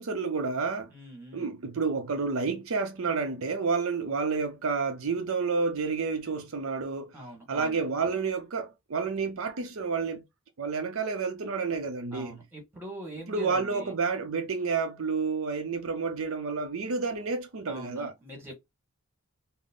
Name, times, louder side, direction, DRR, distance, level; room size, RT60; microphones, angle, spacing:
voice 1, 0.0-0.9 1.3-7.1 7.5-10.2 10.6-12.4 13.3-18.1, right 4 dB, 70° right, 0.6 m, -30 dB
voice 2, 0.9-1.5 7.1-7.8 12.1-13.9 17.7-18.5, right 1 dB, 10° right, 1.6 m, -43 dB
3.8 x 2.0 x 3.6 m
head